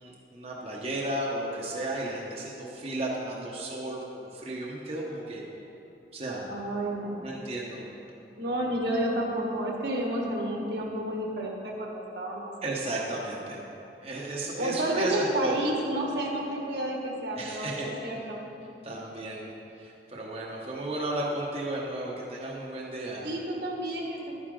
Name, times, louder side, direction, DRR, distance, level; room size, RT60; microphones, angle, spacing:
voice 1, 0.0-5.4 6.1-6.5 7.2-7.8 12.6-13.6 14.0-15.6 17.4-17.9 18.8-19.5 19.7-23.2, right 1 dB, 35° right, -4 dB, 1.0 m, -34 dB
voice 2, 6.5-7.3 8.4-12.5 14.6-18.4 18.9-19.0 23.2-24.3, right 1 dB, 70° right, 0 dB, 1.6 m, -31 dB
11.5 x 9.6 x 3.8 m, 3.0 s
head